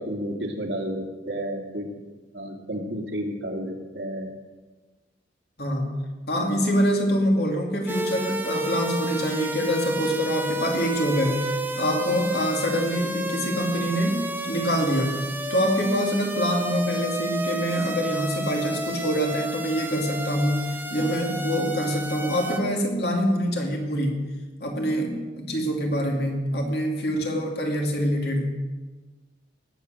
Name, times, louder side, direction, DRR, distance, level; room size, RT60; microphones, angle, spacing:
voice 1, 0.0-1.9 2.3-4.3, equal, 70° right, 2 dB, 2.3 m, -31 dB
voice 2, 5.6-6.0 6.3-24.3 24.6-28.6, equal, 60° left, 1 dB, 2.7 m, -25 dB
sound 1, 7.9-22.6, right 1 dB, 10° right, 1.0 m, -31 dB
19.0 x 8.2 x 6.6 m, 1.3 s
head